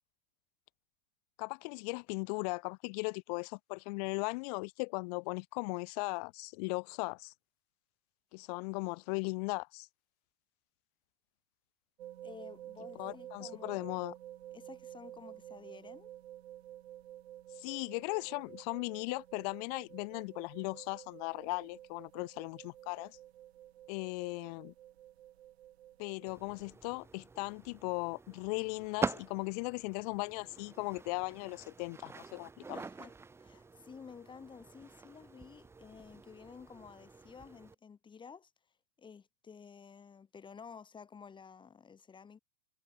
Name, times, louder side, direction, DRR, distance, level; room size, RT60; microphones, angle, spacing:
voice 1, 1.4-7.3 8.3-9.9 13.0-14.1 17.6-23.2 23.9-24.7 26.0-32.8, left 31 dB, 40° left, 0.4 m, -38 dB
sound 1, 12.0-26.4, right 12 dB, 85° right, 1.4 m, -51 dB
voice 2, 12.2-13.9 14.5-16.1 32.7-33.1 33.4-38.5 39.0-42.4, left 6 dB, 15° left, 1.7 m, -52 dB
sound 2, 26.3-37.7, right 4 dB, 10° right, 0.8 m, -45 dB
supercardioid pair, 135°, 31 cm